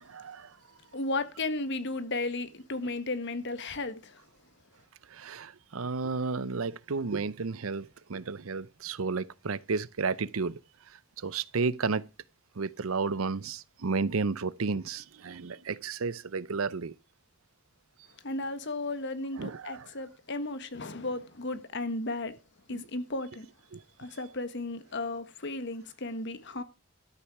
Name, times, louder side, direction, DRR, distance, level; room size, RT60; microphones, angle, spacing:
voice 1, 0.1-0.5 5.1-10.6 11.2-12.0 12.6-16.9 19.4-19.8 22.7-22.8 23.7-23.8, right 4 dB, 85° right, 0.7 m, -32 dB
voice 2, 0.9-4.2 18.2-22.3 22.7-23.5 24.0-26.6, left 2 dB, 60° left, 1.4 m, -34 dB
13.0 x 8.6 x 4.8 m
head